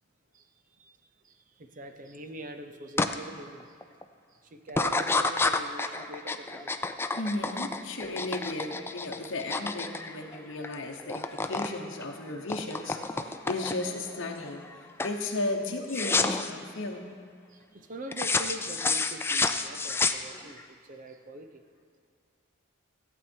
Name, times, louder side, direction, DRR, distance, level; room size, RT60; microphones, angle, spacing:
voice 1, 0.3-1.0 1.2-4.0 4.3-6.8 17.5-21.7, right 2 dB, 40° right, 7 dB, 0.6 m, -44 dB
sound 1, 3.0-3.1 3.6-4.0 4.7-10.7 11.0-11.7 12.0-14.0 14.5-14.7 15.0-15.2 15.9-16.5 18.1-20.6, left 3 dB, 10° left, 0.3 m, -29 dB
voice 2, 7.2-14.6 15.0-17.1, left 2 dB, 65° left, 0 dB, 1.0 m, -35 dB
15.0 x 8.2 x 4.5 m, 2.2 s
head